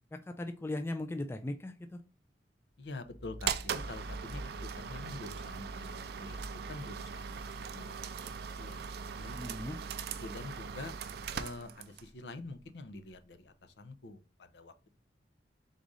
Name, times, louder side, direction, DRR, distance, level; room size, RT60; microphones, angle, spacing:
voice 1, 0.1-2.0 9.4-9.8, left 1 dB, 15° left, 6 dB, 0.3 m, -38 dB
sound 1, 2.7-10.9 11.3-13.9, equal, 20° right, 0.6 m, -53 dB
voice 2, 2.8-9.4 10.2-10.9 11.3-14.9, left 2 dB, 75° left, 9 dB, 0.6 m, -47 dB
sound 2, 3.4-12.1, right 6 dB, 60° right, 0.4 m, -40 dB
3.9 x 2.5 x 4.7 m, 0.33 s
head